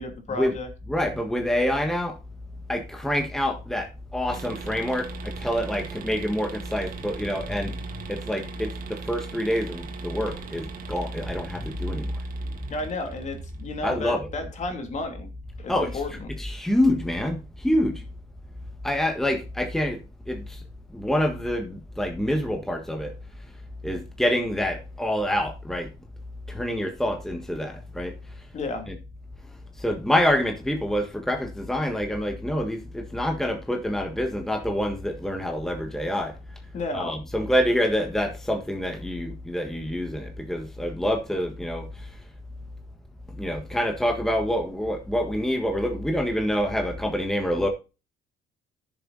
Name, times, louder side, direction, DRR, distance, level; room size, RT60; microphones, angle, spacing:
voice 1, 0.0-0.7 12.7-15.3 15.6-16.3 28.5-28.9 36.7-37.2, left 2 dB, 45° left, 2.8 m, -32 dB
voice 2, 0.9-2.1 2.7-3.9 4.1-7.7 8.1-12.1 12.6-12.7 13.8-14.2 15.7-15.9 16.4-17.9 18.8-20.0 20.3-20.6 20.9-23.1 23.8-25.9 26.5-28.1 28.9-29.0 29.8-36.3 36.9-41.9 43.4-47.7, equal, ahead, 1.6 m, -26 dB
sound 1, 4.3-13.8, right 4 dB, 55° right, 1.9 m, -39 dB
10.5 x 7.0 x 4.0 m
cardioid pair, 110°, 17 cm